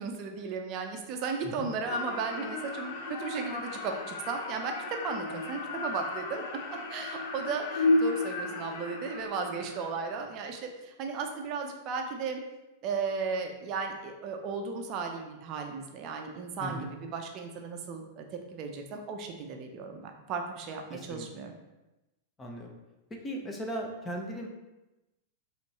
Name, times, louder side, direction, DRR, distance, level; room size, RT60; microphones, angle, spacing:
voice 1, 0.0-6.4 6.9-12.4 12.8-18.2 18.5-21.6, right 5 dB, 45° right, 4 dB, 0.5 m, -35 dB
sound 1, 1.9-9.9, left 2 dB, 55° left, 0.6 m, -33 dB
voice 2, 16.6-16.9 20.9-21.5 22.4-22.8 23.1-24.5, equal, 20° left, 1 dB, 0.8 m, -38 dB
4.3 x 3.1 x 3.1 m, 1.0 s
figure-of-eight pair, 95°, 0 cm